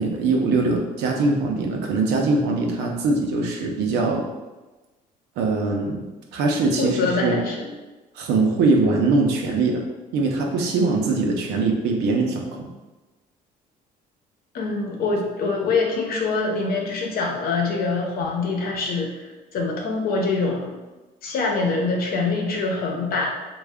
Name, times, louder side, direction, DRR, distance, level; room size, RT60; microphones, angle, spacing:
voice 1, 0.0-4.2 5.4-6.0 6.3-7.4 8.2-9.8 10.1-12.7, right 3 dB, 90° right, 1 dB, 0.6 m, -22 dB
voice 2, 6.8-7.7 14.5-19.2 19.5-20.7 21.2-23.3, left 3 dB, 65° left, 0 dB, 0.8 m, -24 dB
3.3 x 2.3 x 3.5 m, 1.2 s
cardioid pair, 110°, 17 cm